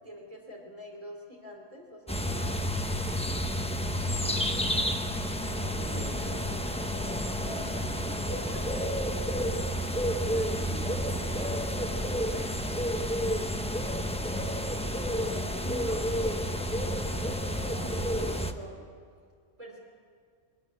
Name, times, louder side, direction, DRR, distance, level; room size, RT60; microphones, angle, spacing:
voice 1, 0.0-2.7 3.9-4.0 8.1-8.6 15.3-18.9 19.6-19.8, left 1 dB, 30° right, 0 dB, 3.0 m, -44 dB
sound 1, 2.1-18.5, equal, 5° left, 0.8 m, -30 dB
voice 2, 5.0-8.0 8.4-8.7 9.3-13.2, equal, 30° left, -2 dB, 5.2 m, -47 dB
Acoustic guitar, 7.4-12.6, right 2 dB, 75° right, 2.6 m, -51 dB
23.0 x 13.0 x 9.4 m, 2.1 s
omnidirectional pair, 1.2 m